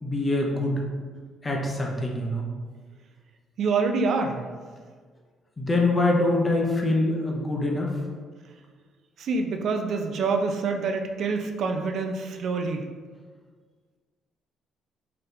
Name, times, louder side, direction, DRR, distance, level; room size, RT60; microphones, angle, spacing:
voice 1, 0.0-0.7 1.4-2.4 5.6-7.9, left 2 dB, 15° left, 0 dB, 0.6 m, -24 dB
voice 2, 3.6-4.5 9.2-12.9, right 4 dB, 55° right, 4 dB, 0.4 m, -26 dB
3.9 x 2.8 x 3.2 m, 1.5 s
cardioid pair, 155°, 0 cm